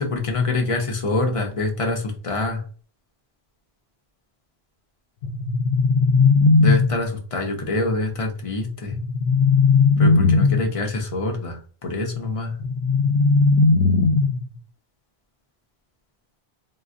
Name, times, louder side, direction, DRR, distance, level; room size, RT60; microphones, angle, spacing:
voice 1, 0.0-2.6 6.5-8.9 10.0-12.5, left 2 dB, 40° left, 2 dB, 0.6 m, -25 dB
sound 1, 5.2-7.2 8.9-10.8 12.6-14.6, left 4 dB, 80° left, 0.9 m, -18 dB
3.8 x 2.1 x 2.4 m, 0.42 s
omnidirectional pair, 1.1 m